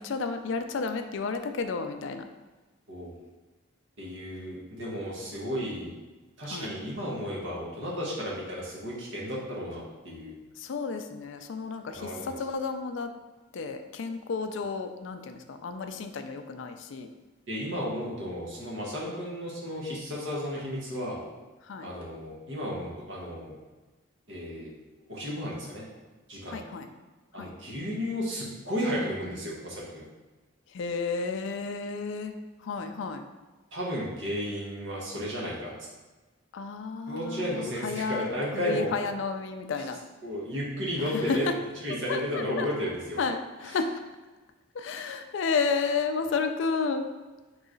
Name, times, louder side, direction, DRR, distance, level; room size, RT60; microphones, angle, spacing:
voice 1, 0.0-2.2 6.4-6.8 10.6-13.1 13.5-17.1 21.6-21.9 26.5-26.9 27.4-27.5 30.7-32.3 32.6-33.2 36.5-40.0 41.0-41.6 42.1-42.9 43.2-43.9 44.7-47.0, left 4 dB, 60° left, 7 dB, 0.4 m, -32 dB
voice 2, 4.0-5.9 6.4-10.3 11.9-12.3 17.5-21.2 21.8-23.5 24.3-24.7 25.1-25.8 26.3-26.6 27.3-30.0 33.7-35.7 37.1-38.9 40.2-41.5 41.8-43.2, equal, 55° right, -5 dB, 1.1 m, -33 dB
3.9 x 3.1 x 3.8 m, 1.2 s
head